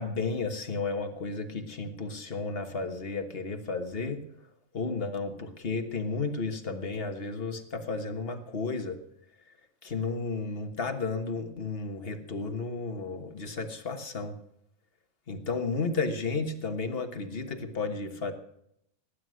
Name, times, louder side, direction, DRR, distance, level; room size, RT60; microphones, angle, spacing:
voice 1, 0.0-4.2 4.7-9.0 9.8-14.4 15.3-18.3, left 4 dB, 45° left, 7 dB, 1.6 m, -33 dB
18.0 x 9.5 x 6.4 m, 0.75 s
omnidirectional pair, 1.4 m